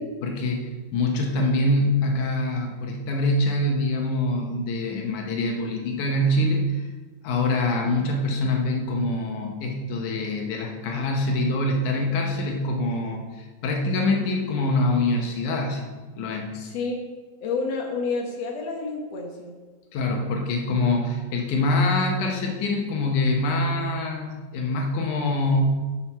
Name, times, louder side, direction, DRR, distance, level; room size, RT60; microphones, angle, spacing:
voice 1, 0.2-6.9 7.2-15.9 16.2-16.5 19.9-25.6, left 2 dB, 90° left, 2 dB, 2.6 m, -24 dB
voice 2, 16.5-17.0 17.4-19.5, left 4 dB, 60° left, 0 dB, 2.5 m, -29 dB
10.5 x 5.9 x 5.7 m, 1.3 s
omnidirectional pair, 3.3 m